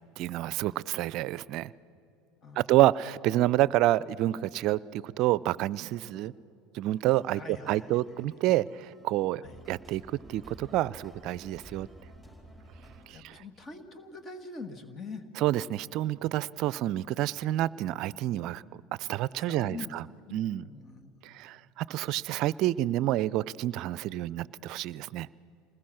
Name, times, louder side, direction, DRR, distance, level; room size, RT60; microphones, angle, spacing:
voice 1, 0.2-1.7 2.6-6.3 6.7-9.4 9.7-11.9 13.1-13.4 15.4-18.6 19.0-20.1 20.3-20.7 21.2-25.3, right 15 dB, 55° right, 21 dB, 0.5 m, -28 dB
voice 2, 2.4-2.7 7.3-7.9 8.2-8.3 9.4-9.6 13.1-15.2 19.5-19.9 20.3-21.1, left 4 dB, 35° left, 9 dB, 1.7 m, -43 dB
sound 1, 6.9-13.0, right 1 dB, 10° left, 4.8 m, -52 dB
27.5 x 20.5 x 6.5 m, 2.7 s
hypercardioid pair, 80°, 0 cm